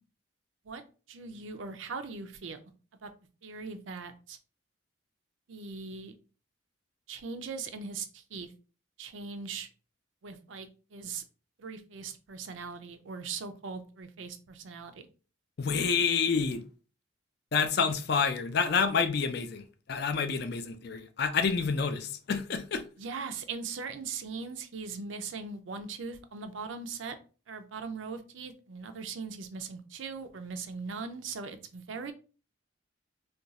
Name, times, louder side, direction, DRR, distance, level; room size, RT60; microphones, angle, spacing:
voice 1, 1.1-2.6 3.0-3.1 3.4-4.4 5.5-6.2 7.1-8.5 9.0-9.7 10.2-11.2 11.6-15.0 23.0-27.2 27.5-32.1, right 5 dB, 80° right, 0.5 m, -40 dB
voice 2, 15.6-16.6 17.5-19.6 19.9-22.8, left 5 dB, 55° left, 0.4 m, -28 dB
2.5 x 2.3 x 4.0 m
head